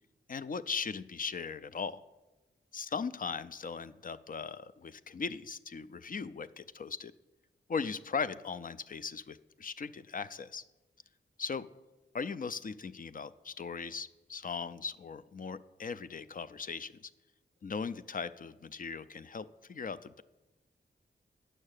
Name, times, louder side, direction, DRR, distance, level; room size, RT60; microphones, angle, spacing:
voice 1, 0.3-2.0 2.7-7.1 7.7-10.6 11.4-11.7 12.1-17.1 17.6-20.2, left 5 dB, 45° left, 14 dB, 0.4 m, -38 dB
8.8 x 6.5 x 6.5 m, 1.1 s
wide cardioid pair, 70°, 19 cm